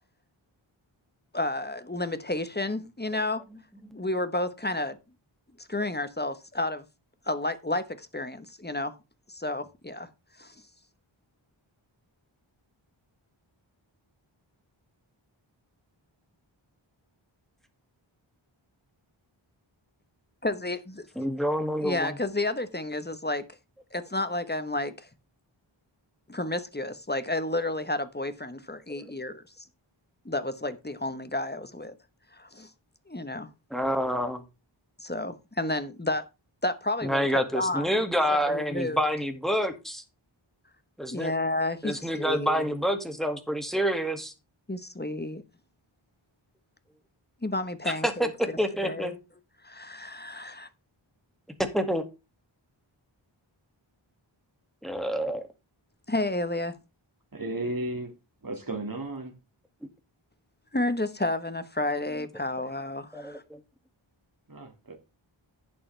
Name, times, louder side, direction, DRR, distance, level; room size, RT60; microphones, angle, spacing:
voice 1, 1.3-3.4 3.9-5.0 5.7-6.8 7.3-8.9 9.3-10.1 10.4-10.5 20.4-21.0 21.8-23.4 23.9-25.1 26.3-29.7 30.2-31.9 32.3-32.7 33.1-33.5 35.0-36.3 36.6-37.9 38.5-39.0 41.1-42.8 44.7-45.4 47.4-48.3 48.8-49.1 49.6-50.7 56.1-56.7 60.7-63.4, left 2 dB, 20° left, 1.1 m, -31 dB
voice 2, 21.2-22.1 29.0-29.1 33.7-34.4 37.0-40.0 41.0-41.3 41.8-44.3 47.8-48.3 48.6-49.1 51.7-52.0 54.8-55.4 63.1-63.6, equal, ahead, 2.0 m, -28 dB
voice 3, 57.3-58.1 58.4-59.3 64.5-64.9, right 2 dB, 45° right, 2.1 m, -34 dB
11.5 x 8.5 x 3.4 m
wide cardioid pair, 40°, 49 cm